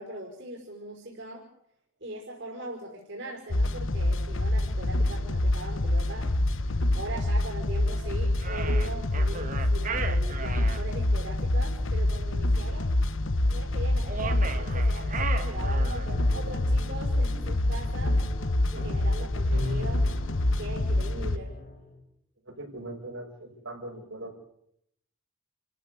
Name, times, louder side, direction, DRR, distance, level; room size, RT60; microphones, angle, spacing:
voice 1, 0.0-1.5 2.0-6.3 6.9-12.9 13.5-18.2 18.7-20.1 20.6-21.6, right 2 dB, 55° right, -1 dB, 5.3 m, -40 dB
sound 1, 3.5-21.4, left 1 dB, 65° left, 1.1 m, -26 dB
sound 2, 8.4-10.8 14.0-16.2, right 5 dB, 40° right, 1.7 m, -36 dB
Piano, 16.1-22.0, left 2 dB, 45° left, 4.7 m, -40 dB
voice 2, 22.4-24.4, right 1 dB, 70° right, 0 dB, 6.4 m, -40 dB
30.0 x 15.0 x 8.4 m, 0.74 s
head